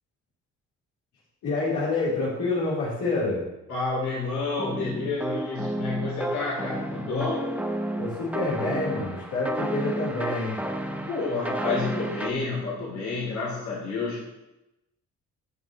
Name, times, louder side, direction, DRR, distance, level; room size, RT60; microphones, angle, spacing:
voice 1, 1.4-3.4 8.0-10.6, left 3 dB, 85° left, -8 dB, 3.7 m, -27 dB
voice 2, 3.7-7.4 11.0-14.3, left 3 dB, 70° left, -6 dB, 3.4 m, -29 dB
sound 1, 4.6-12.3, right 1 dB, 5° right, 0.8 m, -31 dB
15.5 x 5.5 x 3.1 m, 0.95 s
cardioid pair, 90°, 30 cm